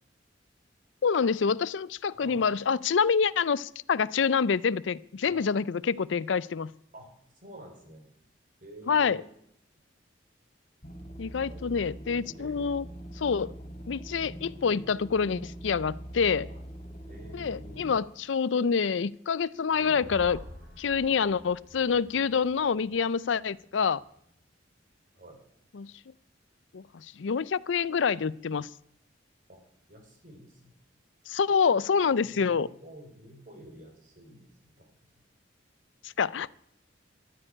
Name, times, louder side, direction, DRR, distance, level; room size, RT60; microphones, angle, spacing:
voice 1, 1.0-6.7 8.9-9.2 11.2-12.8 13.2-13.5 13.9-16.5 17.3-20.4 20.8-24.0 25.7-25.9 26.7-28.7 31.3-32.7 36.0-36.5, left 6 dB, 85° left, 19 dB, 0.5 m, -27 dB
voice 2, 2.1-2.5 5.2-5.5 6.9-7.1 7.4-8.1 8.6-9.3 11.3-11.8 12.1-12.8 16.4-16.6 17.1-17.9 19.7-20.1 25.2-25.4 29.5-29.6 29.9-30.8 32.1-34.5 34.8-35.0, right 1 dB, 45° right, 3 dB, 4.3 m, -50 dB
sound 1, 10.8-18.0, right 1 dB, 45° left, 3.8 m, -43 dB
sound 2, 19.8-24.1, equal, 65° right, 3.4 m, -48 dB
12.0 x 9.9 x 9.9 m, 0.72 s
head